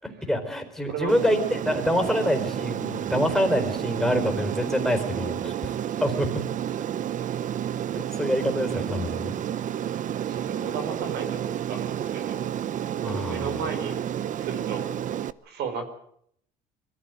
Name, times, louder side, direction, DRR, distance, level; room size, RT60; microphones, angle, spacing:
voice 1, 0.0-5.7 6.0-6.4 7.9-9.3 13.0-13.5, equal, ahead, 4 dB, 4.4 m, -26 dB
Aircraft, 1.1-15.3, right 10 dB, 50° right, 0.8 m, -30 dB
voice 2, 10.3-12.4 13.0-14.0 14.3-14.9 15.4-15.9, right 6 dB, 80° right, 7 dB, 4.7 m, -34 dB
22.5 x 14.5 x 9.3 m, 0.68 s
cardioid pair, 110°, 17 cm